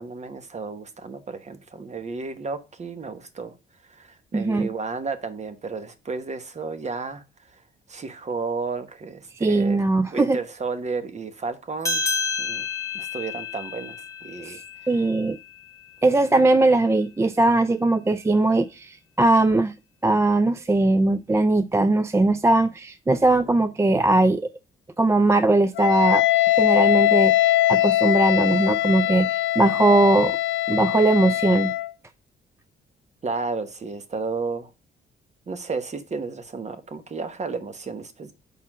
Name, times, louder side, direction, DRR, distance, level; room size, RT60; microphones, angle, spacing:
voice 1, 0.0-3.5 3.9-7.6 7.9-9.8 10.1-12.0 12.4-12.7 12.9-14.6 15.0-15.1 33.2-34.7 35.5-38.3, right 4 dB, 35° right, 1.1 m, -32 dB
voice 2, 4.3-4.7 9.4-10.4 14.4-14.6 14.9-15.4 16.0-19.7 20.0-24.5 25.0-26.2 26.5-30.4 30.7-31.7, right 2 dB, 15° right, 0.3 m, -20 dB
sound 1, 11.8-16.7, left 4 dB, 15° left, 1.4 m, -31 dB
Wind instrument woodwind instrument, 25.8-31.9, left 15 dB, 65° left, 0.5 m, -21 dB
5.2 x 4.4 x 6.1 m
cardioid pair, 90°, 20 cm